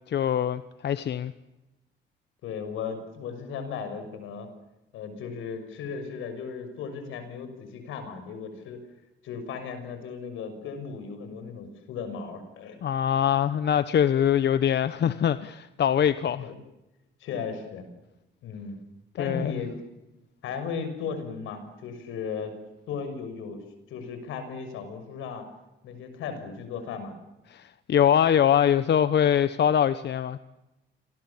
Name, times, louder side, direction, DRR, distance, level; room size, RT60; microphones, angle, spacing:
voice 1, 0.1-1.3 12.8-16.5 19.2-19.6 27.5-30.4, left 9 dB, 60° left, 1.1 m, -23 dB
voice 2, 2.4-4.5 4.9-8.8 9.2-12.8 16.4-16.6 17.2-17.8 18.4-18.8 19.2-19.8 20.4-22.6 22.9-25.5 25.8-27.1, left 6 dB, 90° left, 6.5 m, -36 dB
29.0 x 23.5 x 7.3 m
cardioid pair, 90°, 20 cm